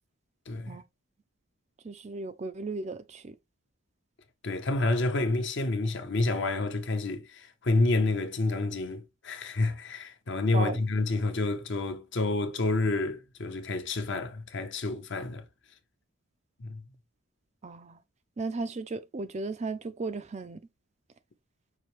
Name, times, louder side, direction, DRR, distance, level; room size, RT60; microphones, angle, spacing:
voice 1, 0.5-0.8 4.4-15.4 16.6-16.8, left 2 dB, 50° left, 0.8 m, -29 dB
voice 2, 1.8-3.3 10.5-10.8 17.6-18.0 18.4-20.6, right 3 dB, 30° right, 0.3 m, -35 dB
5.8 x 2.7 x 3.1 m
head